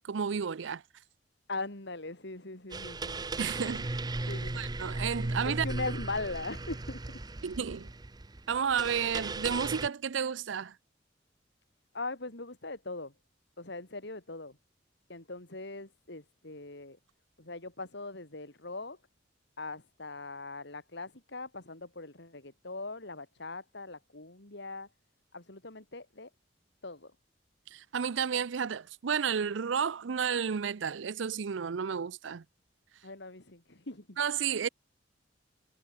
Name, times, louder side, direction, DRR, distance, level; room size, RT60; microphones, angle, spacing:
voice 1, 0.0-0.8 3.4-3.9 4.6-5.7 7.4-7.9 8.5-10.8 27.7-32.4 34.2-34.7, right 7 dB, 80° right, 0.5 m, -32 dB
voice 2, 1.5-3.2 4.2-4.6 5.5-7.2 11.9-13.1 13.6-14.6 15.1-17.0 17.4-19.0 19.6-24.9 25.3-26.3 26.8-27.1 33.0-34.2, left 3 dB, 65° left, 3.8 m, -40 dB
sound 1, 2.7-9.9, right 2 dB, 20° right, 0.7 m, -36 dB
head